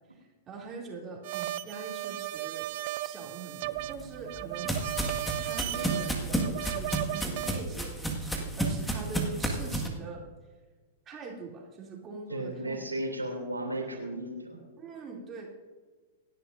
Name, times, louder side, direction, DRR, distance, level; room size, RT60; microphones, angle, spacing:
voice 1, 0.1-2.7 3.0-4.7 5.4-10.2 11.1-12.8 14.8-15.5, right 4 dB, 25° right, -2 dB, 2.8 m, -43 dB
sound 1, 1.2-7.6, right 15 dB, 45° right, 0.5 m, -35 dB
sound 2, 3.8-9.9, right 1 dB, 5° left, 1.7 m, -32 dB
voice 2, 12.3-14.6, right 1 dB, 85° right, 0 dB, 2.8 m, -34 dB
27.0 x 10.5 x 2.6 m, 1.4 s
figure-of-eight pair, 105°, 0 cm